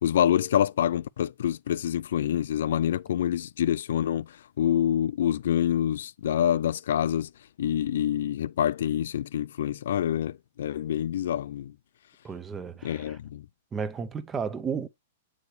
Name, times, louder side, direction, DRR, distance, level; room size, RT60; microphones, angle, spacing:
voice 1, 0.0-4.3 4.6-7.3 7.6-11.7 12.8-13.4, left 10 dB, 70° left, 0.3 m, -26 dB
voice 2, 12.2-13.2 13.7-14.9, right 6 dB, 15° right, 0.6 m, -33 dB
8.0 x 4.8 x 3.2 m
hypercardioid pair, 150°, 0 cm